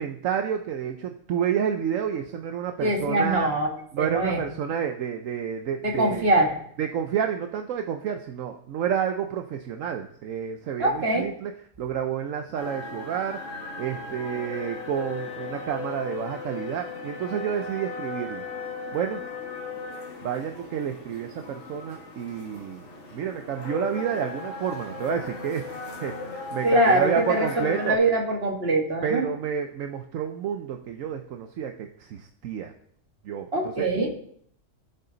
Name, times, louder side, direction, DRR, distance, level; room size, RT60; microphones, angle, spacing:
voice 1, 0.0-3.5 3.9-6.3 6.8-11.5 11.8-13.4 13.8-18.4 18.9-19.2 20.2-22.8 23.1-28.0 29.0-32.7 33.2-33.9, right 8 dB, 75° right, 6 dB, 1.1 m, -30 dB
voice 2, 2.8-3.7 4.0-4.4 5.8-6.6 10.8-11.3 26.6-29.3 33.5-34.1, right 1 dB, 50° right, 1 dB, 2.0 m, -23 dB
sound 1, 12.5-27.9, left 4 dB, 60° left, 2.0 m, -37 dB
14.0 x 6.7 x 3.9 m, 0.64 s
omnidirectional pair, 1.4 m